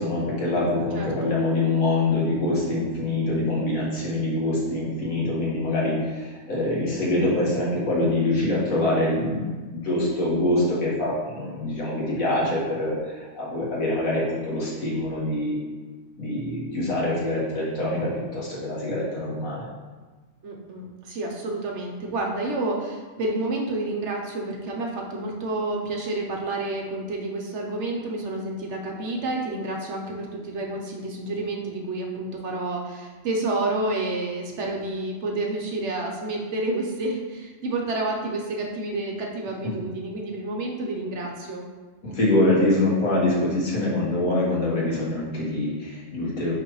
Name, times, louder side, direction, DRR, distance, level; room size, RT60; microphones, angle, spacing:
voice 1, 0.0-15.6 16.2-19.6 42.0-46.5, left 2 dB, 90° left, -6 dB, 2.1 m, -24 dB
voice 2, 0.9-1.3 20.4-41.7, right 2 dB, 60° right, 0 dB, 1.1 m, -29 dB
5.8 x 5.6 x 3.1 m, 1.3 s
omnidirectional pair, 1.4 m